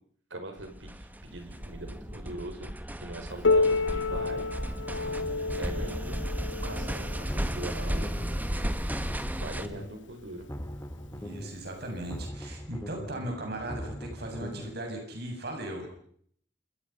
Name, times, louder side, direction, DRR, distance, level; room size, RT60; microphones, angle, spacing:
voice 1, 0.3-4.5 5.5-6.2 6.6-8.1 9.3-10.5, right 2 dB, 80° right, 5 dB, 5.9 m, -41 dB
sound 1, 0.6-9.7, equal, 10° right, 1.4 m, -34 dB
Piano, 3.4-8.8 9.6-9.7 10.2-10.3 11.1-11.2 12.2-12.3, left 3 dB, 80° left, 1.2 m, -30 dB
sound 2, 7.3-8.4 8.7-10.0 10.3-11.6 11.9-14.8, equal, 15° left, 2.2 m, -40 dB
voice 2, 11.1-15.9, right 1 dB, 60° right, 3 dB, 7.2 m, -38 dB
29.0 x 27.5 x 5.8 m, 0.64 s
head